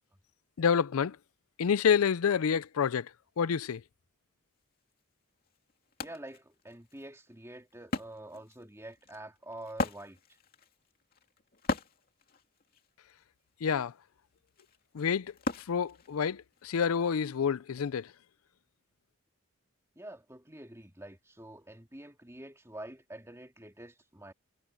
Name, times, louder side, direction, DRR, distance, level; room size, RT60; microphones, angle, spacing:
voice 1, 0.6-1.2 1.6-3.1 3.4-3.8 13.6-13.9 14.9-15.3 15.7-18.1, left 7 dB, 85° left, 0.5 m, -28 dB
Wood, 4.9-5.0 5.4-16.6, left 3 dB, 45° left, 2.7 m, -40 dB
voice 2, 6.0-10.2 19.9-24.3, right 1 dB, 15° right, 2.8 m, -47 dB
head